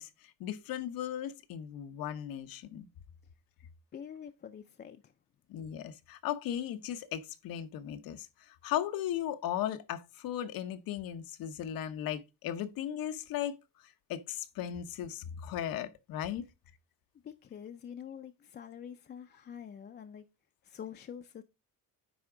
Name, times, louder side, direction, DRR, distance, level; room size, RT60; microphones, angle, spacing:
voice 1, 0.0-2.9 5.5-16.4, left 11 dB, 90° left, 0.9 m, -37 dB
voice 2, 3.9-5.1 17.2-20.2 20.6-21.4, left 8 dB, 30° left, 0.4 m, -46 dB
9.6 x 3.5 x 4.9 m
cardioid pair, 165°, 34 cm